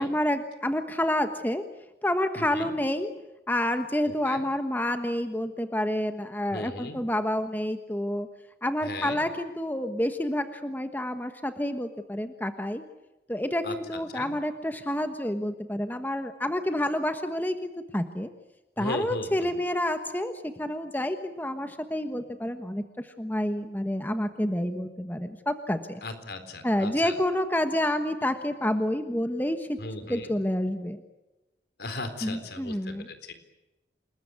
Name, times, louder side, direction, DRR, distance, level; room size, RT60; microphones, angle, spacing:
voice 1, 0.0-1.6 2.0-3.1 3.5-8.3 8.6-12.8 13.3-18.3 18.8-26.0 26.6-29.8 30.1-31.0 32.2-33.1, left 1 dB, 10° left, 7 dB, 1.3 m, -29 dB
voice 2, 2.4-2.7 4.0-4.4 6.5-7.0 8.8-9.2 13.6-14.3 18.8-19.6 26.0-27.1 29.8-30.3 31.8-33.3, left 2 dB, 65° left, 9 dB, 3.9 m, -37 dB
28.5 x 21.0 x 9.6 m, 1.0 s
head